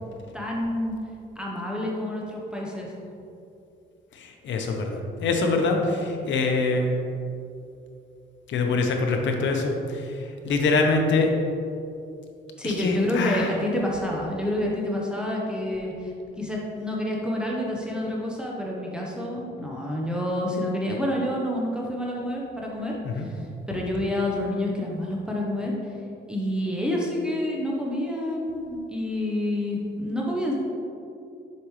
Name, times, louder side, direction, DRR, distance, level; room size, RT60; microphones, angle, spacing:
voice 1, 0.3-0.9 1.4-2.9 12.6-23.4 23.7-25.9 26.3-30.5, left 1 dB, 5° right, -3 dB, 0.9 m, -28 dB
voice 2, 4.2-6.9 8.5-9.7 10.4-11.3 12.6-13.5 23.0-23.3, left 3 dB, 70° left, 3 dB, 0.9 m, -24 dB
7.1 x 5.0 x 3.2 m, 2.6 s
cardioid pair, 90°, 20 cm